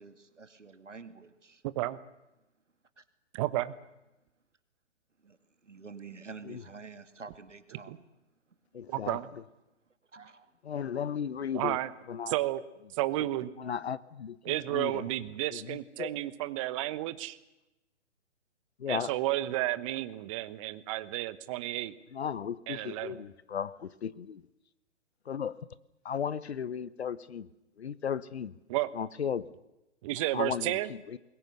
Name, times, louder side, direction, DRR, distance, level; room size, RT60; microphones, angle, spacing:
voice 1, 0.0-1.6 3.0-3.1 5.2-5.4 5.6-8.1 8.5-8.6 10.1-10.5, right 4 dB, 85° right, 9 dB, 2.4 m, -48 dB
voice 2, 3.3-3.8 7.9-8.0 8.9-9.3 11.5-11.9 12.3-12.6 12.9-13.5 14.4-17.4 18.9-21.9 22.7-23.2 28.7-28.9 30.0-30.9, right 16 dB, 25° right, 14 dB, 1.2 m, -32 dB
voice 3, 8.7-9.2 10.6-11.8 12.1-12.3 13.6-15.1 15.5-16.1 18.8-19.1 22.1-24.4 25.3-25.7 26.0-27.5 27.8-28.6 28.9-29.5 30.3-31.2, left 7 dB, 60° left, 17 dB, 1.2 m, -35 dB
28.5 x 22.0 x 6.8 m, 0.95 s
figure-of-eight pair, 135°, 36 cm